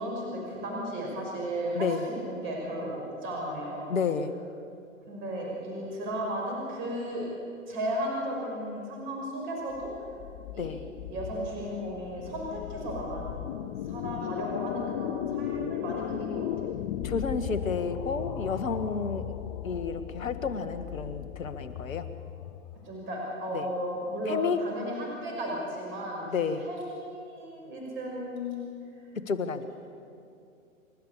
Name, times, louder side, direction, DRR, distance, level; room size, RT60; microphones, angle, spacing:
voice 1, 0.0-4.0 5.1-7.3 7.7-9.9 10.5-10.7 11.1-13.4 13.8-16.5 22.8-26.2 26.6-28.6, equal, 30° right, -2 dB, 6.0 m, -34 dB
voice 2, 1.7-2.1 3.9-4.3 10.6-10.8 17.0-19.3 19.6-22.1 23.5-23.7 24.3-24.6 26.3-26.7 29.3-29.6, left 5 dB, 70° left, 10 dB, 1.8 m, -30 dB
sound 1, 9.7-22.9, left 12 dB, 25° left, 0.5 m, -37 dB
28.5 x 12.5 x 8.5 m, 2.5 s
hypercardioid pair, 125°, 41 cm